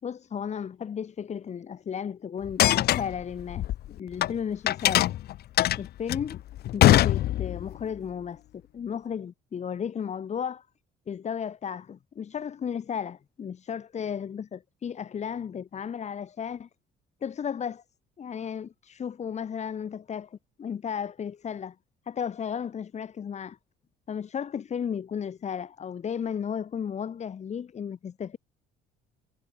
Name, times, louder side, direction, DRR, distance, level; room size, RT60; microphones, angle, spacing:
voice 1, 0.0-3.7 4.0-5.1 5.8-6.4 6.7-10.7 11.1-16.7 17.2-17.8 18.2-21.8 22.1-23.6 24.1-28.4, left 7 dB, 40° left, 4.3 m, -34 dB
sound 1, 2.4-4.3 4.7-7.7, left 14 dB, 70° left, 3.6 m, -22 dB
cardioid pair, 110°, 17 cm